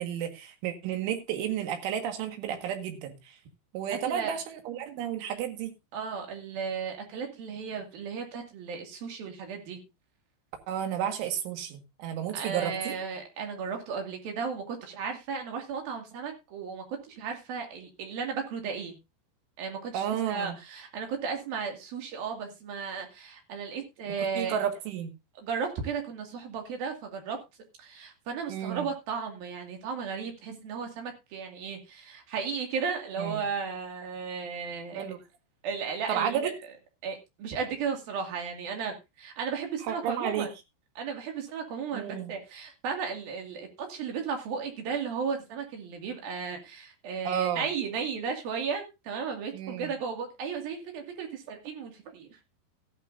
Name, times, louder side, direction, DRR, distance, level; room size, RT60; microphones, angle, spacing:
voice 1, 0.0-3.4 3.7-5.7 10.7-13.0 19.9-20.5 24.4-25.1 28.5-28.9 33.2-33.5 35.0-35.2 36.1-36.5 39.8-40.5 41.9-42.3 47.3-47.7 49.5-49.9, right 9 dB, 80° right, 6 dB, 4.2 m, -32 dB
voice 2, 4.0-4.4 5.9-9.8 12.3-19.0 19.6-24.6 25.4-27.4 27.8-35.0 35.6-36.5 37.0-40.5 41.0-52.4, right 6 dB, 55° right, 3 dB, 3.8 m, -35 dB
15.0 x 11.5 x 2.6 m, 0.25 s
omnidirectional pair, 5.5 m